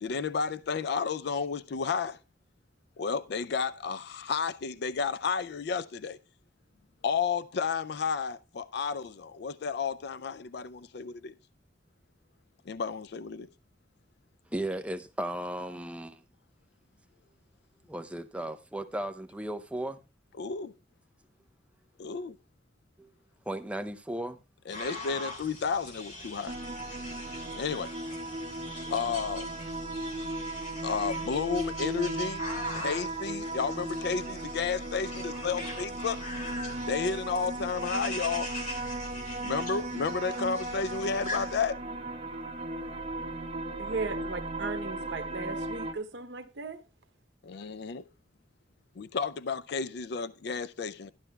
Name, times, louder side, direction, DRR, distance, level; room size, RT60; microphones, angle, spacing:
voice 1, 0.0-2.2 3.0-6.2 7.0-11.3 12.7-13.5 20.4-20.7 22.0-22.4 24.7-26.5 27.6-27.9 28.9-29.5 30.8-32.4 32.7-36.2 36.9-38.5 39.4-41.8 47.4-48.0 49.0-51.1, left 5 dB, 65° left, 0.4 m, -32 dB
voice 2, 14.5-16.2 17.9-20.0 23.0-23.1 23.5-24.4 27.1-27.2, right 1 dB, 5° right, 0.5 m, -35 dB
sound 1, 24.7-41.6, left 1 dB, 45° left, 2.9 m, -42 dB
sound 2, 26.5-45.9, right 2 dB, 35° right, 1.3 m, -36 dB
voice 3, 43.8-46.8, right 3 dB, 85° right, 0.9 m, -37 dB
12.0 x 11.0 x 2.2 m
head